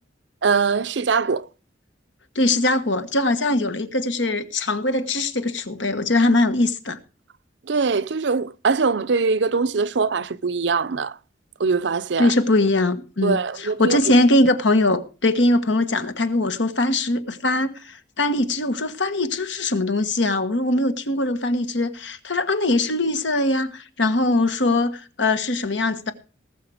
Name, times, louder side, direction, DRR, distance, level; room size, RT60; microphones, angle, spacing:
voice 1, 0.4-1.5 7.7-11.2 11.6-12.3 13.2-14.0, right 4 dB, 75° right, 0.6 m, -22 dB
voice 2, 2.3-7.0 12.2-26.1, left 2 dB, 80° left, 1.4 m, -21 dB
19.0 x 6.6 x 4.9 m
head